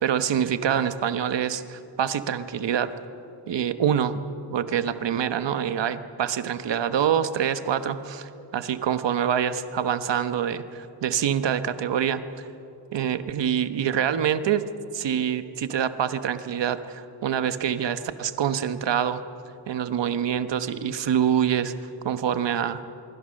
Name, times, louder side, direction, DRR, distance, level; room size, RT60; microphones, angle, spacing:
voice 1, 0.0-2.9 3.5-4.1 4.5-12.5 12.9-14.6 14.9-19.2 19.7-21.7 22.0-22.8, right 9 dB, 70° right, 11 dB, 1.2 m, -25 dB
25.0 x 23.0 x 6.5 m, 2.7 s
wide cardioid pair, 140°, 44 cm